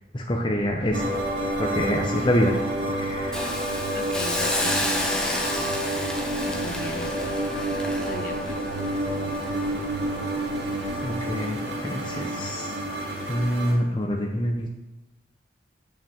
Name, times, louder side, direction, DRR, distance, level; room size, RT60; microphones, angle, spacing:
voice 1, 0.1-1.2 1.6-2.6 3.0-3.4 11.0-12.8 13.3-14.7, equal, 25° left, 1 dB, 0.8 m, -26 dB
sound 1, 0.5-11.3, equal, 25° right, 2.0 m, -43 dB
sound 2, 0.9-13.7, right 1 dB, 70° right, 2.4 m, -29 dB
Hiss, 3.3-10.4 10.8-10.9, left 1 dB, 5° left, 1.0 m, -31 dB
voice 2, 3.9-5.9 6.5-8.6, left 2 dB, 45° left, 5 dB, 1.0 m, -38 dB
7.2 x 6.2 x 7.2 m, 1.0 s
head